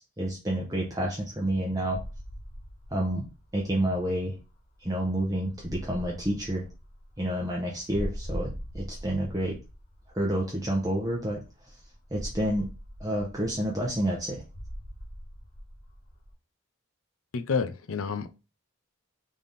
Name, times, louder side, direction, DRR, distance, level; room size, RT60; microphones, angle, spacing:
voice 1, 0.0-2.0 2.9-3.2 3.5-4.4 4.8-6.7 7.2-9.6 10.1-11.4 12.1-12.7 13.0-14.4, right 1 dB, 15° right, 0.7 m, -29 dB
sound 1, 1.9-16.3, equal, 40° left, 1.1 m, -42 dB
voice 2, 17.3-18.3, left 5 dB, 65° left, 0.5 m, -29 dB
3.6 x 3.3 x 4.0 m
head